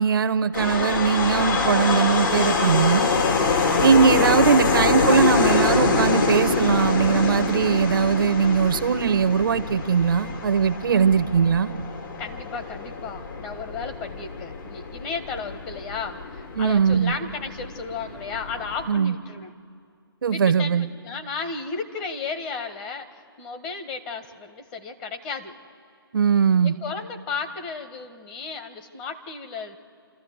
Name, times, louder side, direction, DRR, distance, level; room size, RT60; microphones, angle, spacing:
voice 1, 0.0-3.1 3.8-11.7 16.5-17.1 18.9-19.1 20.2-20.8 26.1-26.7, right 6 dB, 60° right, 13 dB, 0.9 m, -20 dB
sound 1, 0.5-18.9, left 4 dB, 55° left, 2.3 m, -25 dB
voice 2, 12.2-19.5 20.3-25.5 26.6-29.8, left 4 dB, 20° left, 5 dB, 1.4 m, -34 dB
26.5 x 14.0 x 8.0 m, 2.2 s
hypercardioid pair, 145°, 13 cm